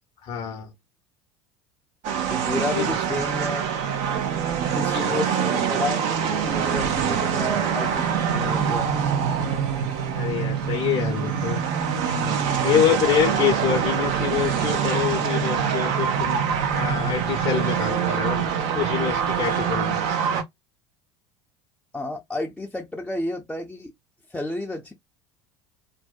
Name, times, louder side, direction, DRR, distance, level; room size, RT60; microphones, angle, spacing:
voice 1, 0.2-0.7 2.7-3.0 4.9-5.2 10.1-11.6 12.6-16.4 16.7-18.5 18.7-20.0, left 9 dB, 50° left, 0.6 m, -26 dB
sound 1, 2.0-20.4, right 7 dB, 55° right, 0.6 m, -24 dB
voice 2, 2.3-3.7 4.6-9.5 21.9-23.9 24.3-24.9, left 1 dB, 5° left, 0.5 m, -31 dB
2.6 x 2.0 x 2.3 m
hypercardioid pair, 70°, 14 cm